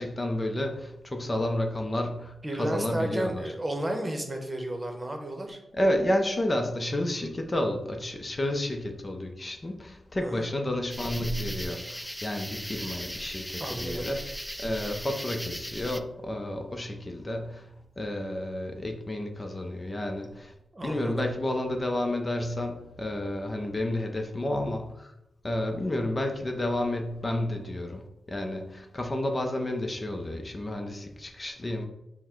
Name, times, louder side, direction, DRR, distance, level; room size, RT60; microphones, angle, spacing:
voice 1, 0.0-3.4 5.7-14.2 14.6-20.5 20.8-25.1 25.4-31.9, left 1 dB, 35° left, 4 dB, 0.6 m, -31 dB
voice 2, 2.4-5.6 10.2-10.5 13.6-14.1 20.7-21.3, right 1 dB, 30° right, 4 dB, 0.9 m, -32 dB
sound 1, 10.9-16.0, equal, ahead, 0.3 m, -37 dB
5.5 x 2.2 x 4.4 m, 0.88 s
cardioid pair, 50°, 0 cm